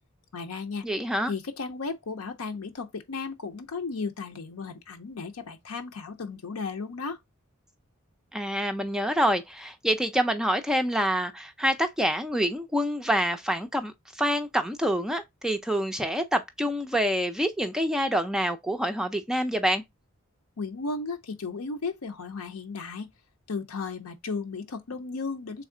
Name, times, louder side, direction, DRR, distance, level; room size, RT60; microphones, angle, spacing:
voice 1, 0.3-0.9 1.3-7.2 20.6-23.1 23.5-25.6, left 4 dB, 85° left, 0.6 m, -35 dB
voice 2, 0.8-1.3 8.3-19.8, equal, ahead, 0.3 m, -27 dB
3.5 x 3.1 x 3.7 m
head